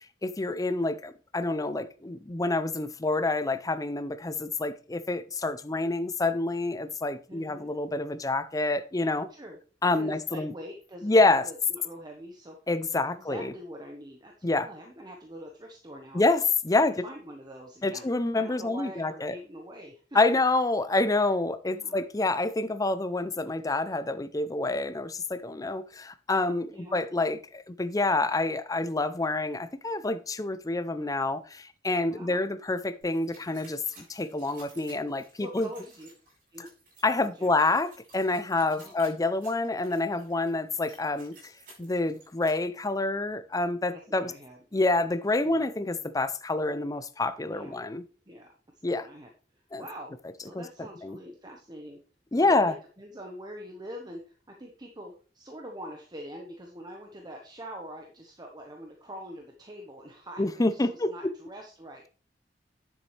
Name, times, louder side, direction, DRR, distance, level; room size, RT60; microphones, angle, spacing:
voice 1, 0.0-9.3 9.8-10.5 11.0-11.4 12.7-13.5 14.4-14.7 16.1-16.9 17.8-19.3 20.1-33.8 34.1-35.7 37.0-41.3 41.8-44.3 44.7-48.0 48.8-49.1 49.7-49.8 50.5-50.6 51.0-51.2 52.3-52.8 60.4-61.3, left 2 dB, 20° left, 0.6 m, -27 dB
voice 2, 7.3-7.7 9.3-9.6 9.9-12.6 12.9-16.2 16.8-20.2 21.7-22.0 26.6-27.0 32.1-32.5 35.4-36.1 36.5-36.7 37.2-37.5 38.6-38.9 43.9-44.6 45.4-45.7 47.5-47.8 48.3-48.5 48.9-52.0 52.3-62.1, equal, 25° right, 1.1 m, -44 dB
sound 1, 33.0-42.5, right 2 dB, 55° right, 5.4 m, -55 dB
10.0 x 7.2 x 3.3 m
head